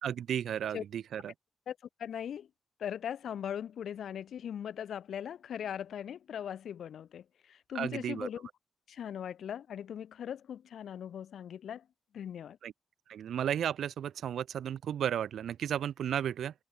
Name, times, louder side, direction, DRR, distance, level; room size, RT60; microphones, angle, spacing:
voice 1, 0.0-1.3 7.7-8.3 12.6-12.7 13.1-16.5, right 9 dB, 85° right, 1.0 m, -34 dB
voice 2, 1.7-2.5 2.8-8.5 8.9-11.8 12.1-12.6, left 9 dB, 80° left, 4.5 m, -39 dB
cardioid pair, 115°, 0 cm